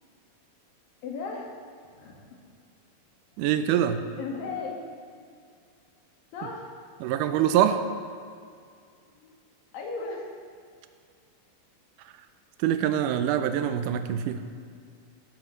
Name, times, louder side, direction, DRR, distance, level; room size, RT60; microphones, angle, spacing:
voice 1, 1.0-1.5 2.0-2.3 4.2-4.8 5.1-5.5 6.3-7.0 9.0-9.3 9.7-10.3, left 4 dB, 70° left, -1 dB, 3.4 m, -37 dB
voice 2, 3.4-4.0 7.0-7.8 12.6-14.4, right 10 dB, 80° right, 9 dB, 2.0 m, -24 dB
17.5 x 13.0 x 3.2 m, 2.2 s
omnidirectional pair, 4.2 m